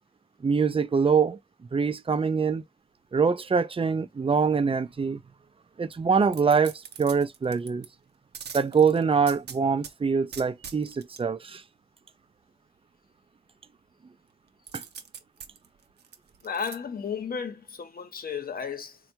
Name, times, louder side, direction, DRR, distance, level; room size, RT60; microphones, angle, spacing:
voice 1, 0.4-1.4 1.7-2.6 3.1-5.2 5.8-7.9 8.5-11.6 14.7-14.8, right 5 dB, 35° right, 0.5 m, -24 dB
sound 1, 6.3-7.9 8.3-9.9 10.3-11.2 14.7-16.8 17.2-17.3, right 7 dB, 85° right, 0.6 m, -42 dB
voice 2, 16.4-19.0, left 6 dB, 65° left, 0.9 m, -33 dB
3.4 x 2.3 x 4.4 m
cardioid pair, 55°, 17 cm